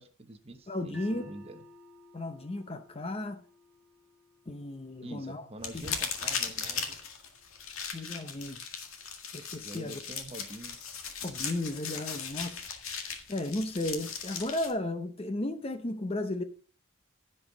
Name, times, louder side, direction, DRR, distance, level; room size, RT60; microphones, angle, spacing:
voice 1, 0.0-1.6 5.0-7.0 9.6-10.8, right 1 dB, 30° right, 1.0 m, -45 dB
voice 2, 0.7-1.3 2.1-3.4 4.5-5.4 5.7-6.0 7.9-8.6 9.3-10.0 11.2-12.7 13.3-16.4, left 1 dB, 25° left, 0.7 m, -34 dB
sound 1, 0.9-7.1, equal, 5° right, 3.5 m, -57 dB
sound 2, 5.6-14.7, left 6 dB, 75° left, 1.8 m, -38 dB
15.5 x 5.5 x 3.9 m
head